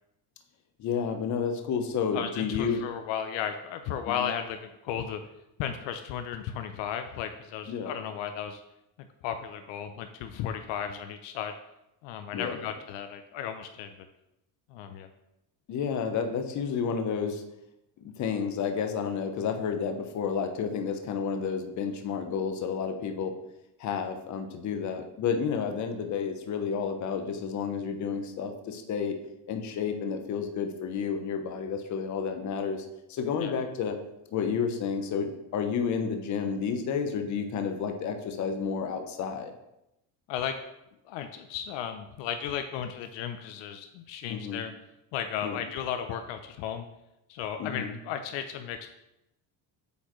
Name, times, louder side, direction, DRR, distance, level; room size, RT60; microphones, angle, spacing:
voice 1, 0.8-2.8 4.1-4.3 7.7-7.9 12.3-12.6 15.7-17.4 18.0-23.3 23.8-29.2 29.5-34.0 34.3-39.5 44.3-44.7 45.4-45.6 47.6-48.0, left 6 dB, 40° left, 6 dB, 0.7 m, -31 dB
voice 2, 2.1-5.2 5.6-8.6 9.0-11.6 12.0-13.9 14.7-15.1 33.4-33.5 40.3-40.6 41.1-44.7 45.1-46.9 47.3-48.9, left 8 dB, 70° left, 8 dB, 0.6 m, -35 dB
8.2 x 4.3 x 3.0 m, 0.88 s
cardioid pair, 140°, 45 cm